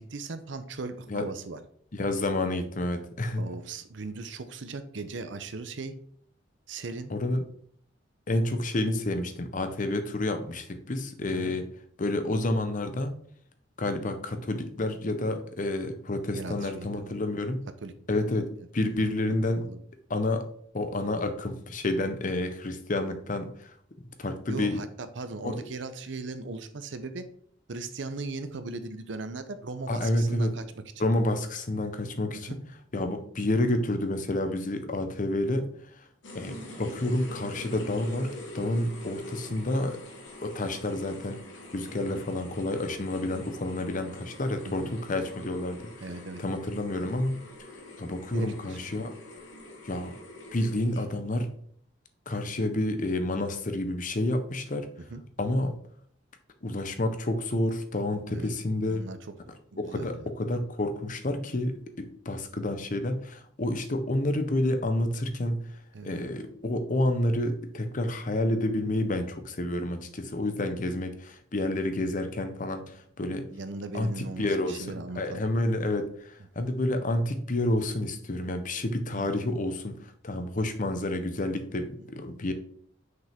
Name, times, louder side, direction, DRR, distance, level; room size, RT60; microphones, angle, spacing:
voice 1, 0.0-1.6 3.4-5.9 6.7-7.1 11.3-11.6 16.3-17.1 17.8-18.2 19.0-19.1 19.6-19.8 24.5-27.3 27.7-31.0 32.4-32.6 42.1-42.2 44.6-44.9 46.0-46.4 48.3-48.8 55.1-55.2 58.3-58.5 58.9-59.2 59.7-60.3 65.9-66.1 73.5-75.4 76.6-76.7 79.1-79.3, right 3 dB, 70° right, 10 dB, 0.7 m, -38 dB
voice 2, 1.9-3.5 7.1-7.4 8.3-11.7 12.0-13.1 13.8-17.6 18.1-19.7 20.1-20.5 20.7-23.7 24.2-24.8 25.4-25.6 29.9-30.5 31.0-32.6 32.9-36.1 36.3-40.0 40.4-41.4 41.7-45.9 46.4-47.4 48.0-49.1 49.8-50.1 50.5-51.5 52.3-54.9 55.4-55.7 56.6-59.0 59.8-65.6 66.0-73.5 73.9-82.5, left 1 dB, 45° left, 8 dB, 0.8 m, -29 dB
sound 1, 36.2-51.3, left 1 dB, 70° left, 1.5 m, -45 dB
6.2 x 5.2 x 3.5 m, 0.62 s
head